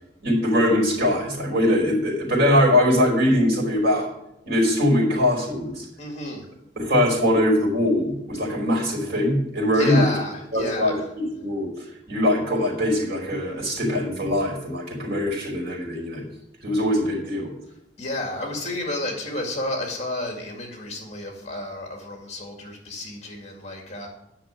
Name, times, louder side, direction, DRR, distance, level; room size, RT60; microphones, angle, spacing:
voice 1, 0.2-4.1 4.5-5.9 6.8-10.1 10.5-16.2 16.6-17.5, left 1 dB, 60° right, 0 dB, 5.0 m, -22 dB
voice 2, 6.0-6.5 9.7-11.1 18.0-24.1, left 1 dB, 35° left, 1 dB, 2.2 m, -31 dB
10.0 x 6.1 x 8.8 m, 0.83 s
head